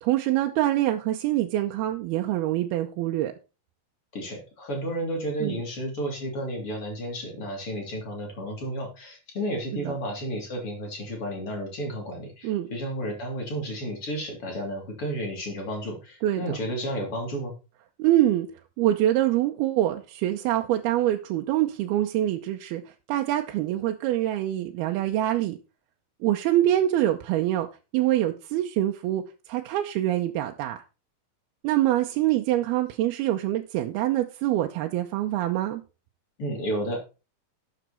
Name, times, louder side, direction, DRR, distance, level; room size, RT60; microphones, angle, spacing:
voice 1, 0.0-3.3 5.4-5.6 9.7-10.0 12.4-12.7 16.2-16.6 18.0-18.5 18.8-25.6 26.2-27.7 27.9-30.8 31.6-35.8, right 13 dB, 90° right, 4 dB, 2.7 m, -25 dB
voice 2, 4.1-17.5 36.4-37.0, right 1 dB, 35° left, 1 dB, 4.2 m, -32 dB
12.5 x 8.0 x 4.4 m, 0.31 s
omnidirectional pair, 4.4 m